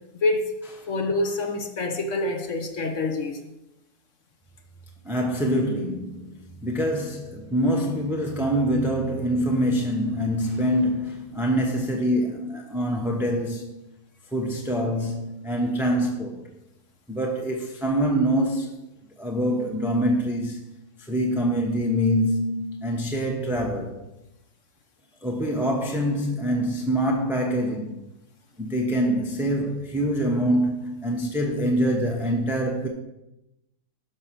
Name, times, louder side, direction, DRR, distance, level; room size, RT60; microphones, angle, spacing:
voice 1, 0.9-3.4, left 2 dB, 55° left, 1.4 m, -26 dB
voice 2, 5.0-6.3 6.6-13.8 14.3-16.5 17.1-18.7 19.2-20.7 21.1-24.0 25.2-28.0 28.6-32.9, equal, ahead, 0.8 m, -25 dB
12.5 x 5.0 x 6.1 m
omnidirectional pair, 1.7 m